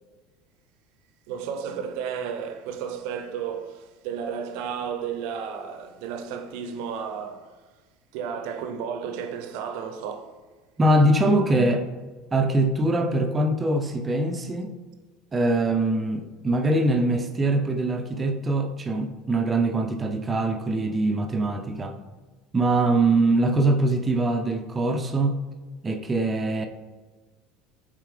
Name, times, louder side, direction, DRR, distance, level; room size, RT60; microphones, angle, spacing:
voice 1, 1.3-7.5 8.1-10.3 18.9-19.0, right 7 dB, 60° right, 0.7 m, -33 dB
voice 2, 10.8-11.9 12.3-14.7 15.3-22.0 22.5-25.4 25.8-26.7, right 2 dB, 25° right, 0.6 m, -23 dB
7.9 x 3.7 x 3.2 m
figure-of-eight pair, 70°, 0 cm